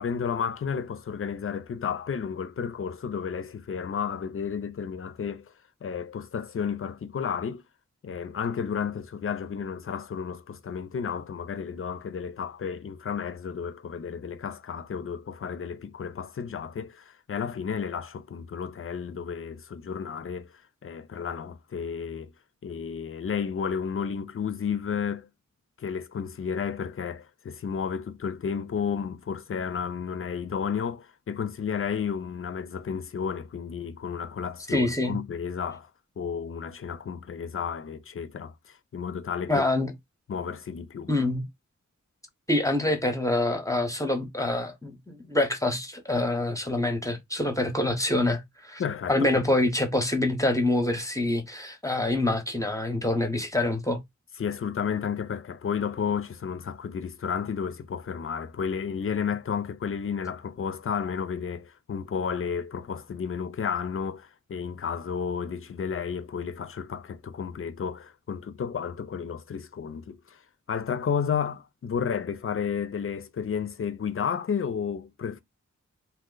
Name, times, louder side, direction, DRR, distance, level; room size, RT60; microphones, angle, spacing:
voice 1, 0.0-5.5 5.8-7.6 8.0-22.3 22.6-25.3 25.8-35.9 36.2-39.7 40.3-41.1 48.8-49.5 54.4-70.4 70.7-75.4, left 7 dB, 45° left, 0.4 m, -32 dB
voice 2, 34.7-35.2 39.5-39.9 41.1-41.4 42.5-48.8 49.1-54.0, left 1 dB, 10° left, 0.7 m, -26 dB
2.8 x 2.0 x 3.7 m
wide cardioid pair, 75°, 30 cm